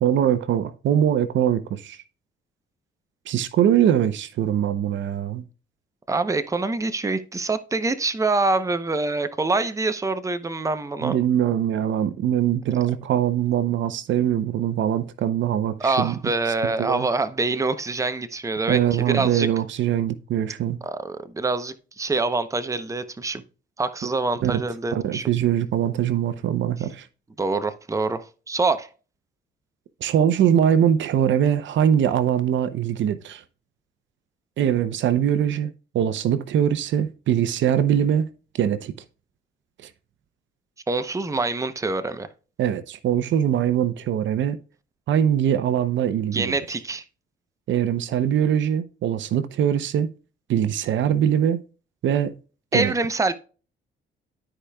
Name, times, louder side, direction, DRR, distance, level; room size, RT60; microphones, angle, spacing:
voice 1, 0.0-2.0 3.3-5.4 11.0-16.1 16.5-17.1 18.7-20.8 24.4-24.6 24.9-27.1 30.0-33.4 34.6-38.3 38.5-38.9 39.8-39.9 42.6-44.6 45.1-46.5 47.7-50.1 50.5-51.6 52.0-52.3 52.7-52.9, right 10 dB, 70° right, 0.7 m, -22 dB
voice 2, 6.1-11.2 15.8-19.5 20.8-23.4 23.8-25.3 27.4-28.9 40.9-42.3 46.3-47.0 52.7-53.3, right 3 dB, 15° right, 0.7 m, -25 dB
13.0 x 5.0 x 2.3 m
cardioid pair, 90°, 20 cm